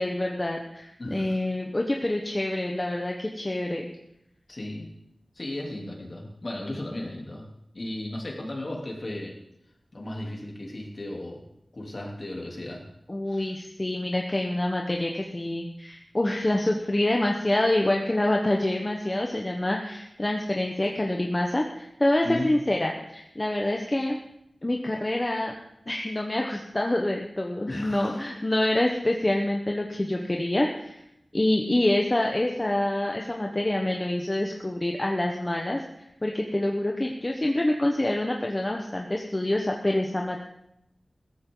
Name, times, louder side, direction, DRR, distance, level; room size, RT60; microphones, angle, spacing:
voice 1, 0.0-3.9 13.1-24.2 24.6-25.5 25.9-31.0 31.3-35.8 36.2-40.4, left 1 dB, 25° left, 1 dB, 1.3 m, -26 dB
voice 2, 1.0-1.5 4.5-4.9 5.3-7.5 7.7-9.4 9.9-11.4 11.7-12.8 13.3-13.5 22.2-22.6 27.6-28.3, left 1 dB, 50° left, -1 dB, 3.5 m, -35 dB
16.5 x 14.5 x 4.1 m, 0.81 s
wide cardioid pair, 80°, 0 cm